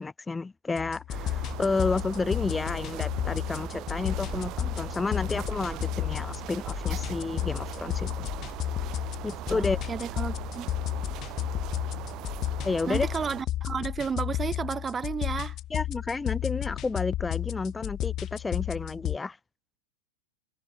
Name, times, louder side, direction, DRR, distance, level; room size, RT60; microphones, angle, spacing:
voice 1, 0.0-8.3 9.2-9.8 12.6-13.1 15.7-19.4, left 3 dB, 10° left, 1.8 m, -31 dB
sound 1, 0.8-19.2, left 13 dB, 35° left, 5.3 m, -33 dB
sound 2, 1.1-13.4, right 17 dB, 35° right, 1.4 m, -40 dB
voice 2, 9.5-10.7 12.9-15.6, right 6 dB, 20° right, 7.4 m, -32 dB
figure-of-eight pair, 90°, 0 cm